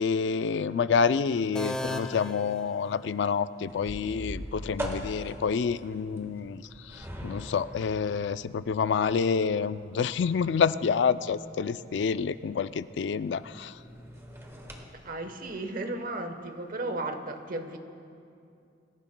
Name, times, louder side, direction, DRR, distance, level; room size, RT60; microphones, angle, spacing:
voice 1, 0.0-13.7, left 6 dB, 70° left, 14 dB, 0.4 m, -28 dB
sound 1, 1.5-3.4, left 1 dB, 5° left, 0.5 m, -36 dB
sound 2, 3.7-14.8, equal, 15° right, 1.4 m, -43 dB
voice 2, 15.0-17.8, right 2 dB, 50° right, 7 dB, 1.0 m, -34 dB
24.0 x 14.5 x 2.2 m, 2.5 s
head